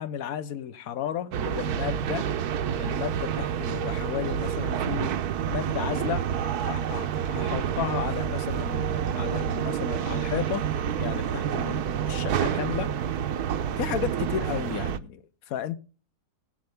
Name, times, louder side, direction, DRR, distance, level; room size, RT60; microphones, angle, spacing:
voice 1, 0.0-2.3 2.8-5.2 5.5-10.7 11.0-12.9 13.8-15.8, left 9 dB, 65° left, 1.3 m, -33 dB
sound 1, 1.3-15.0, right 9 dB, 70° right, 1.2 m, -28 dB
20.5 x 7.9 x 3.5 m
omnidirectional pair, 1.8 m